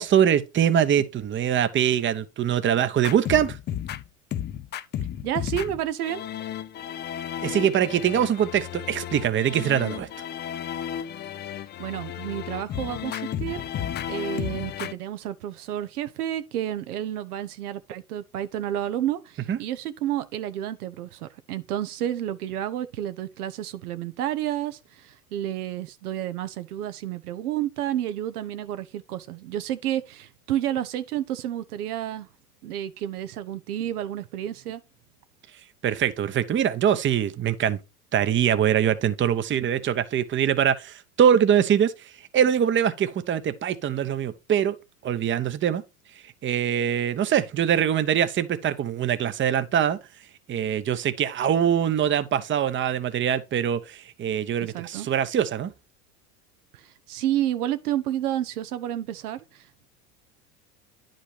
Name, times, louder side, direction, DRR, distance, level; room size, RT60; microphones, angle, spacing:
voice 1, 0.0-3.6 7.4-10.1 19.5-19.6 35.8-37.8 38.1-44.8 45.0-45.8 46.2-50.0 50.5-55.7, right 9 dB, 25° right, 0.8 m, -23 dB
sound 1, 3.0-14.9, left 10 dB, 25° left, 0.4 m, -33 dB
voice 2, 5.2-6.2 11.8-13.6 14.1-32.3 32.6-34.8 54.6-55.1 56.7-59.7, right 12 dB, 80° right, 0.9 m, -30 dB
10.0 x 5.2 x 3.3 m
hypercardioid pair, 90°, 45 cm